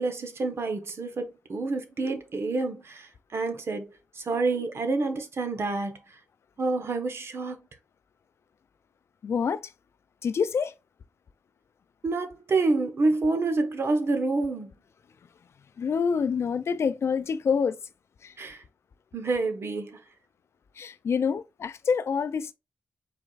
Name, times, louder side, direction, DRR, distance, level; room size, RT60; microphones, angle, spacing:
voice 1, 0.0-6.1 6.6-7.6 12.0-14.7 18.4-18.6 19.1-20.0, right 3 dB, 60° right, 1.1 m, -28 dB
voice 2, 9.2-9.7 10.2-10.7 15.8-17.8 18.2-18.3 20.8-22.5, left 6 dB, 65° left, 0.4 m, -27 dB
4.6 x 4.3 x 2.4 m
cardioid pair, 50°, 5 cm